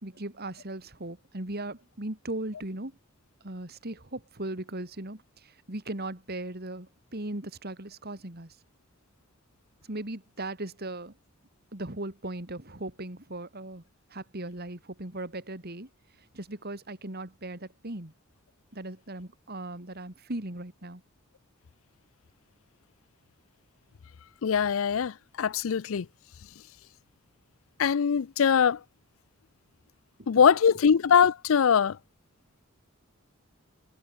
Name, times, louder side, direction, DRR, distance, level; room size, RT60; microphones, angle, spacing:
voice 1, 0.0-3.0 3.4-8.5 9.9-11.1 11.7-13.8 14.1-15.9 16.3-18.1 18.7-21.0 30.2-30.3, right 1 dB, 50° right, 2.9 m, -38 dB
voice 2, 24.4-26.1 27.8-28.8 30.3-32.0, left 7 dB, 75° left, 0.5 m, -22 dB
head